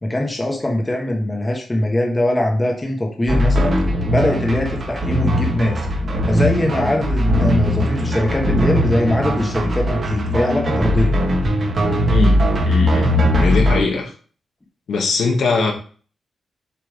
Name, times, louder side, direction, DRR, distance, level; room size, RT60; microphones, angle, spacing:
voice 1, 0.0-3.8 4.1-5.8 6.3-11.1, left 1 dB, 15° left, 1 dB, 1.4 m, -21 dB
sound 1, 3.3-13.8, equal, 45° right, 1.8 m, -19 dB
voice 2, 12.1-14.1 14.9-15.7, left 4 dB, 75° left, 1 dB, 1.8 m, -21 dB
7.2 x 5.1 x 3.7 m, 0.40 s
wide cardioid pair, 165°, 0 cm